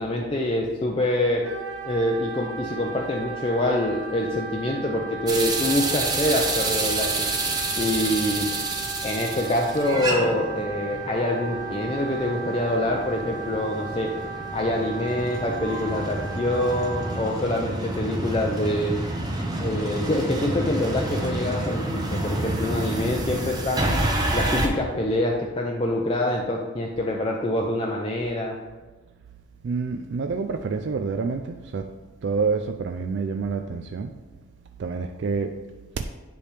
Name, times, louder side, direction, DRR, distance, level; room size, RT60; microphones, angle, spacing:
voice 1, 0.0-1.4 1.9-7.3 7.8-8.5 9.0-14.1 14.5-18.9 19.6-23.9 24.3-28.6, left 1 dB, 25° left, 0.5 m, -25 dB
Wind instrument woodwind instrument, 1.4-17.3, right 4 dB, 90° right, 1.1 m, -36 dB
sound 1, 5.3-24.7, right 2 dB, 20° right, 0.7 m, -29 dB
voice 2, 29.6-31.9 32.2-34.2 34.8-35.6, right 4 dB, 55° right, 0.3 m, -28 dB
9.9 x 3.4 x 3.3 m
head